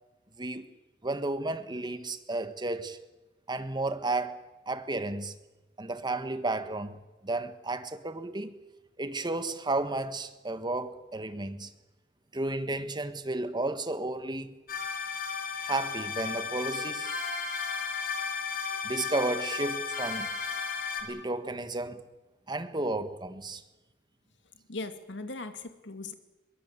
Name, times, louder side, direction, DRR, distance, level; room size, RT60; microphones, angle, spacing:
voice 1, 0.4-0.7 1.0-3.0 3.5-5.3 5.8-7.0 7.2-8.6 9.0-11.7 12.3-14.5 15.6-17.1 18.8-20.3 21.0-22.0 22.5-23.6, right 2 dB, 25° right, 1.6 m, -33 dB
sound 1, 14.7-21.0, left 5 dB, 55° left, 4.5 m, -34 dB
voice 2, 24.7-26.1, left 3 dB, 70° left, 2.3 m, -39 dB
22.0 x 21.5 x 8.2 m
head